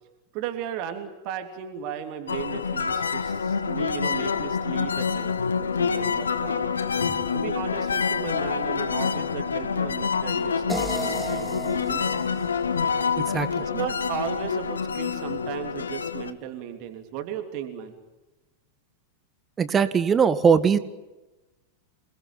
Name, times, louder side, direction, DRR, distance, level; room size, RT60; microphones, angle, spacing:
voice 1, 0.3-5.3 5.7-6.6 7.3-11.5 11.8-12.1 13.6-18.0, right 9 dB, 45° right, 6 dB, 3.2 m, -35 dB
sound 1, 2.3-16.3, left 6 dB, 70° left, 1.5 m, -27 dB
sound 2, 10.7-13.8, right 1 dB, ahead, 2.4 m, -35 dB
voice 2, 13.2-13.5 19.6-20.8, right 6 dB, 20° right, 13 dB, 1.9 m, -21 dB
28.5 x 20.5 x 9.2 m, 1.1 s
figure-of-eight pair, 90°, 0 cm